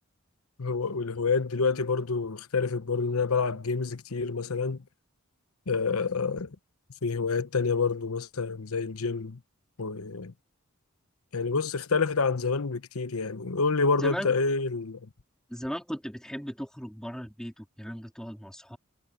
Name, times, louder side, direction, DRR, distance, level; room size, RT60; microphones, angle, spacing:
voice 1, 0.6-4.8 5.7-6.6 7.0-9.4 9.8-10.3 11.3-15.0, left 4 dB, 85° left, 1.0 m, -28 dB
voice 2, 14.0-14.3 15.5-18.8, equal, 5° left, 3.4 m, -37 dB
head